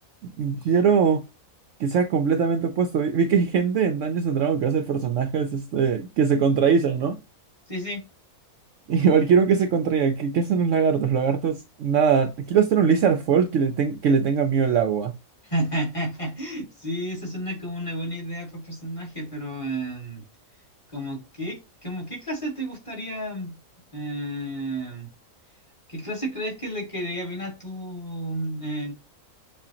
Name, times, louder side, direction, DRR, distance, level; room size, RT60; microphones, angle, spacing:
voice 1, 0.2-1.2 1.8-7.2 8.9-15.1, right 6 dB, 65° right, 0.8 m, -21 dB
voice 2, 7.7-8.0 15.4-20.2 20.9-23.6 23.9-25.1 25.9-28.9, right 1 dB, 20° left, 2.1 m, -31 dB
7.1 x 2.5 x 2.9 m
omnidirectional pair, 1.5 m